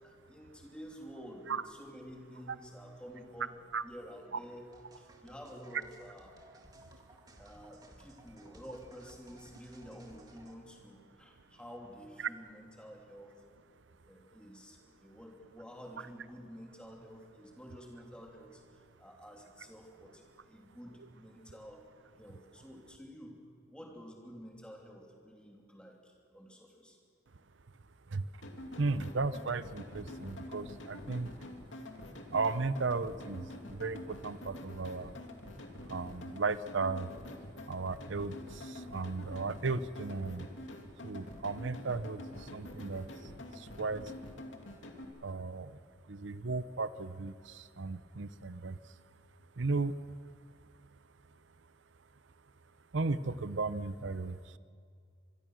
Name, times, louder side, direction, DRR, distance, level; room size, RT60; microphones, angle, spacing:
voice 1, 0.0-3.6 3.8-6.3 7.4-13.3 14.1-18.6 19.0-21.8 22.2-23.4 23.7-27.0, equal, 5° left, 0 dB, 3.0 m, -50 dB
sound 1, 4.7-10.5, right 1 dB, 20° right, 1.9 m, -58 dB
sound 2, 28.4-45.0, left 1 dB, 75° left, 2.4 m, -47 dB
voice 2, 28.8-31.3 32.3-35.1 35.9-37.1 37.7-40.5 41.0-43.1 43.5-44.1 45.2-45.8 46.1-48.8 49.6-49.9 52.9-54.6, right 3 dB, 75° right, 14 dB, 0.7 m, -35 dB
25.5 x 22.0 x 6.3 m, 2.3 s
head